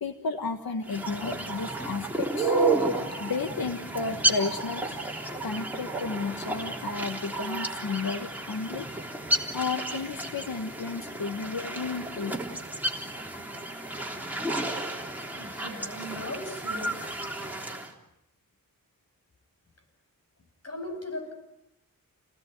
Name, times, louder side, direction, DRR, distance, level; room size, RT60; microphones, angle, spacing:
voice 1, 0.0-2.6 3.2-5.0 5.4-8.9 9.5-12.4, left 4 dB, 90° left, 6 dB, 1.7 m, -33 dB
sound 1, 0.8-17.9, right 2 dB, 5° right, 3.5 m, -32 dB
voice 2, 15.3-17.0 20.6-21.3, left 1 dB, 45° left, 4 dB, 7.9 m, -38 dB
29.0 x 19.5 x 9.5 m, 0.83 s
wide cardioid pair, 120°, 35 cm